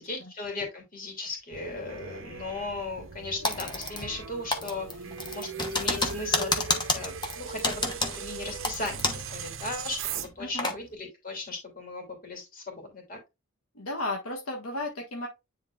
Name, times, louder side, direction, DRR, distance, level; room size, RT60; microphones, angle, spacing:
voice 1, 0.0-13.2, left 3 dB, 40° left, 2.7 m, -37 dB
sound 1, 1.5-10.3, right 5 dB, 65° right, 0.8 m, -39 dB
Typing, 3.4-4.2 4.5-9.3 9.6-9.7 10.2-10.8, left 2 dB, 20° left, 1.0 m, -29 dB
voice 2, 13.7-15.3, left 2 dB, 80° left, 1.5 m, -34 dB
9.8 x 3.9 x 2.4 m
head